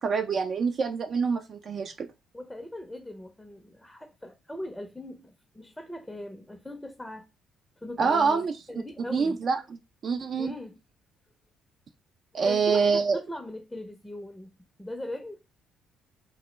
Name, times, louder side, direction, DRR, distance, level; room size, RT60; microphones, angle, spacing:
voice 1, 0.0-2.1 8.0-8.5 9.1-10.5 12.3-13.2, right 5 dB, 55° right, 0.3 m, -26 dB
voice 2, 2.3-7.3 7.8-9.4 10.4-10.8 12.3-14.5 14.8-15.4, left 1 dB, 10° left, 0.5 m, -39 dB
2.1 x 2.1 x 3.1 m
hypercardioid pair, 55°, 0 cm